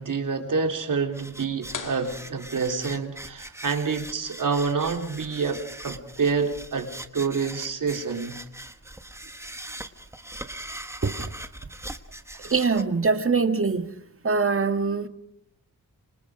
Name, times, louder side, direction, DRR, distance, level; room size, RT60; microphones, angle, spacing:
voice 1, 0.0-8.4, right 5 dB, 60° right, 3.6 m, -27 dB
sound 1, 1.1-12.8, right 1 dB, 10° right, 1.2 m, -41 dB
sound 2, 1.7-3.4, left 5 dB, 60° left, 2.2 m, -40 dB
voice 2, 12.4-13.9 14.2-15.1, right 4 dB, 40° right, 1.8 m, -23 dB
27.0 x 25.5 x 5.0 m
wide cardioid pair, 160°, 35 cm